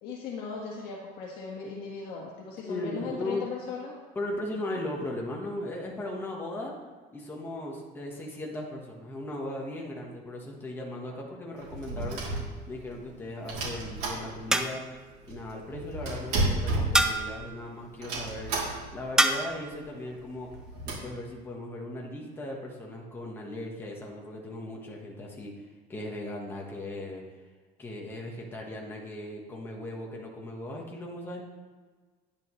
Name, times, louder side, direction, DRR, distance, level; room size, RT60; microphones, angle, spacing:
voice 1, 0.0-4.0, left 5 dB, 60° left, -3 dB, 1.7 m, -38 dB
voice 2, 2.6-3.5 4.1-6.7 7.1-12.2 12.7-14.8 15.3-18.5 18.9-20.5 20.8-25.5 25.9-27.2 27.8-31.4, left 1 dB, 10° left, -2 dB, 1.4 m, -37 dB
sound 1, 11.6-13.0 13.5-14.7 15.0-15.1 15.3-17.5 18.0-19.1 19.4-19.5 19.7-19.9 20.4-20.9, right 2 dB, 70° right, 3.1 m, -32 dB
sound 2, 12.3-12.9 14.5-15.1 16.9-17.5 19.2-19.6, right 1 dB, 5° right, 0.5 m, -27 dB
10.5 x 10.5 x 3.2 m, 1.4 s
cardioid pair, 155°, 18 cm